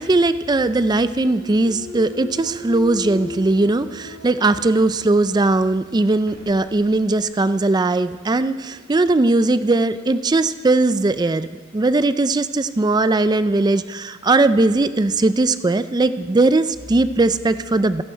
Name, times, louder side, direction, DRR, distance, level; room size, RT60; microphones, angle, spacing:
voice 1, 0.0-11.5 11.7-18.0, right 2 dB, 20° right, 13 dB, 0.4 m, -19 dB
Thump thud, 1.1-5.1 5.6-10.3, left 1 dB, 80° right, 4.4 m, -39 dB
29.0 x 11.0 x 4.5 m, 1.5 s
head